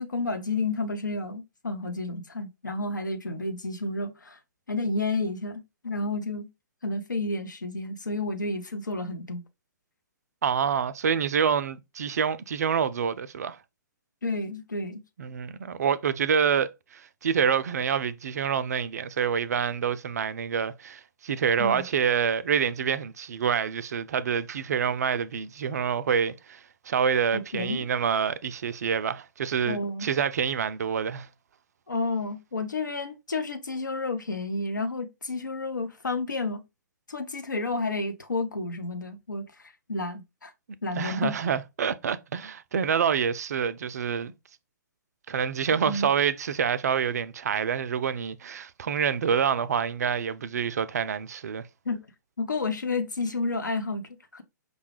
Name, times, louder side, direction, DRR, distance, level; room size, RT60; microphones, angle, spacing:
voice 1, 0.0-4.4 4.7-6.5 6.8-9.4 14.2-15.0 21.6-21.8 27.3-27.9 29.6-30.1 31.9-36.6 37.1-39.4 39.9-40.5 40.8-41.4 45.8-46.1 51.9-52.0 52.4-54.4, left 3 dB, 80° left, 0.7 m, -31 dB
voice 2, 10.4-13.6 15.2-31.3 41.0-44.3 45.3-51.7, right 7 dB, 55° right, 0.3 m, -27 dB
5.1 x 2.3 x 3.1 m
figure-of-eight pair, 120°, 10 cm